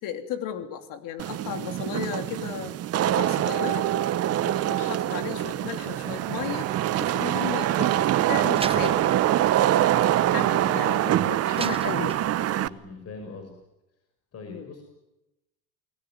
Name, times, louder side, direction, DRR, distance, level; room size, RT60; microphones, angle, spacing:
voice 1, 0.0-2.7 3.1-3.9 4.4-9.1 10.3-12.2 14.5-14.7, left 9 dB, 65° left, 7 dB, 3.1 m, -35 dB
Wind / Rain, 1.2-12.7, right 12 dB, 45° right, 1.0 m, -25 dB
sound 1, 5.2-12.2, right 17 dB, 75° right, 1.4 m, -31 dB
Slam, 8.6-11.0 11.6-12.8, right 5 dB, 15° right, 0.9 m, -38 dB
voice 2, 10.5-11.1 12.6-13.5 14.3-14.8, left 4 dB, 45° left, 5 dB, 6.4 m, -41 dB
29.0 x 20.5 x 9.4 m, 0.94 s
cardioid pair, 125°, 35 cm